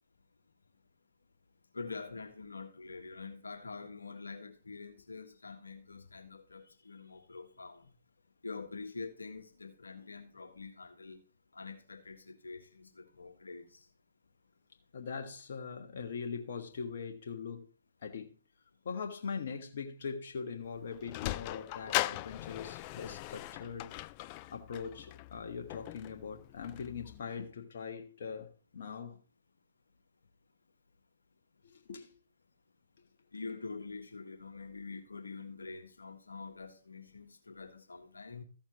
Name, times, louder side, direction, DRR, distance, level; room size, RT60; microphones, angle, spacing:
voice 1, 1.7-7.9 8.4-11.2 11.5-13.9 33.3-38.4, left 4 dB, 85° left, 1.7 m, -46 dB
voice 2, 14.9-17.7 18.0-18.4 18.8-23.9 24.5-29.2 31.7-32.1, left 6 dB, 60° left, 1.5 m, -41 dB
Sliding door, 20.6-27.2, left 17 dB, 35° left, 0.4 m, -39 dB
14.5 x 7.1 x 3.0 m
figure-of-eight pair, 130°, 0 cm